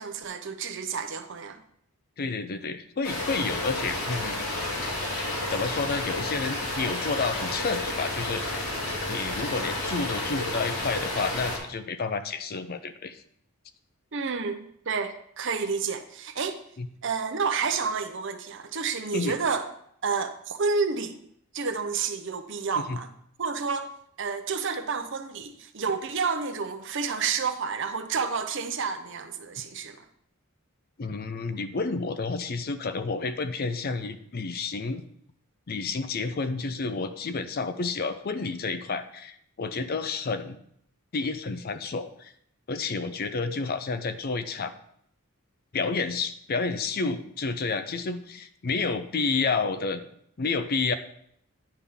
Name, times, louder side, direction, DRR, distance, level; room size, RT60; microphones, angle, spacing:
voice 1, 0.0-1.6 14.1-16.6 17.0-19.7 20.0-21.2 21.5-23.1 23.4-23.9 24.2-30.0, right 5 dB, 55° right, 0.7 m, -30 dB
voice 2, 2.2-4.4 5.5-8.6 9.1-13.2 16.8-16.9 19.1-19.4 22.8-23.0 31.0-35.0 35.7-40.6 41.1-42.3 42.7-44.7 45.7-50.0 50.4-50.9, left 4 dB, 45° left, 0.5 m, -30 dB
sound 1, 3.0-11.6, left 1 dB, 75° left, 2.2 m, -31 dB
9.8 x 3.5 x 5.5 m
head